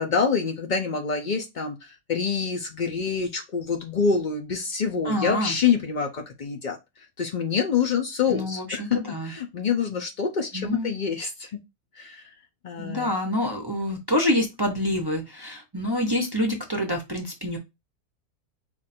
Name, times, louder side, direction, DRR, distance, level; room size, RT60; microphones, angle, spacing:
voice 1, 0.0-11.6 12.0-12.3 12.6-13.1, left 6 dB, 85° left, 4 dB, 0.4 m, -26 dB
voice 2, 5.0-5.5 8.3-9.3 10.5-10.9 12.8-17.6, left 1 dB, 25° right, 1 dB, 0.5 m, -27 dB
4.5 x 2.5 x 4.2 m, 0.22 s
omnidirectional pair, 1.6 m